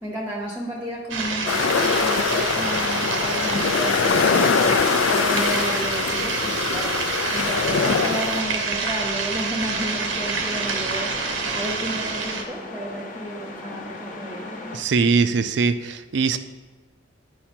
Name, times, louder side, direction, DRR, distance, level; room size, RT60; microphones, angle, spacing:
voice 1, 0.0-4.7 5.1-7.0 7.3-11.2 11.5-14.5, right 1 dB, 10° right, -2 dB, 0.8 m, -32 dB
sound 1, 1.1-12.5, right 4 dB, 80° right, 0.9 m, -27 dB
sound 2, 1.5-8.4, left 5 dB, 85° left, 0.4 m, -23 dB
sound 3, 9.7-14.8, left 2 dB, 40° left, 0.9 m, -37 dB
voice 2, 14.7-16.4, right 5 dB, 60° right, 11 dB, 0.4 m, -21 dB
9.9 x 4.8 x 4.4 m, 1.3 s
head